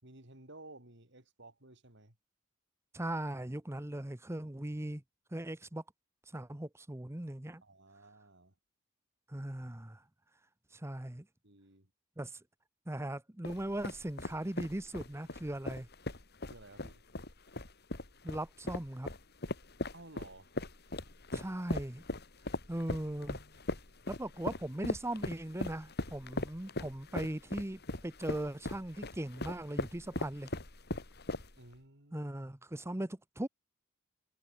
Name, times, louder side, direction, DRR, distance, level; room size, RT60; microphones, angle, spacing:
voice 1, 0.0-2.2 7.6-8.5 11.4-11.9 16.4-17.0 19.9-20.6 31.6-32.3, right 2 dB, 65° right, 6.4 m, -55 dB
voice 2, 2.9-5.0 5.3-5.8 6.3-7.6 9.3-10.0 10.7-11.3 12.2-12.4 12.9-15.9 18.2-19.1 21.3-22.0 22.7-23.4 24.1-30.5 32.1-33.5, right 1 dB, 15° right, 0.9 m, -39 dB
sound 1, 13.4-31.7, left 2 dB, 55° left, 3.2 m, -39 dB
head